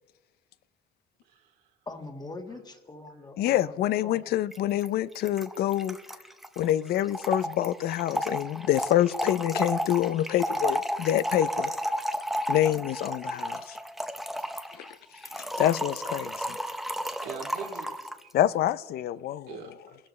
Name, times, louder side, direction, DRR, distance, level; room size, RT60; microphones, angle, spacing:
voice 1, 1.2-1.7 16.6-18.3 19.5-20.0, right 6 dB, 85° right, 2.8 m, -43 dB
voice 2, 1.8-3.8 4.0-4.2, left 2 dB, 25° left, 1.6 m, -42 dB
voice 3, 3.4-6.0 6.6-11.7 12.5-13.8 14.7-15.0 15.4-16.6 18.3-19.6, left 12 dB, 65° left, 0.5 m, -26 dB
Trickle dribble / Fill (with liquid), 4.5-4.6 4.8-4.9 5.1-18.2, equal, ahead, 0.8 m, -32 dB
22.0 x 12.5 x 3.2 m
cardioid pair, 110°, 17 cm